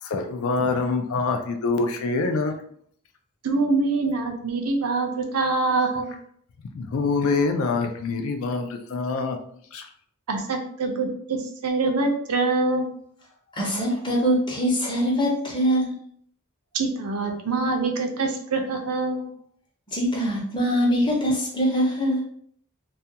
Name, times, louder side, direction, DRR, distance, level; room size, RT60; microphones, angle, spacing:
voice 1, 0.0-2.6 6.7-9.4 9.7-9.9, left 4 dB, 65° left, 5 dB, 0.4 m, -25 dB
voice 2, 3.4-6.1 10.3-12.9 16.7-19.3, right 3 dB, 80° right, 3 dB, 0.5 m, -25 dB
voice 3, 13.5-16.0 19.9-22.2, equal, 20° left, -2 dB, 0.6 m, -23 dB
2.3 x 2.2 x 2.7 m, 0.62 s
head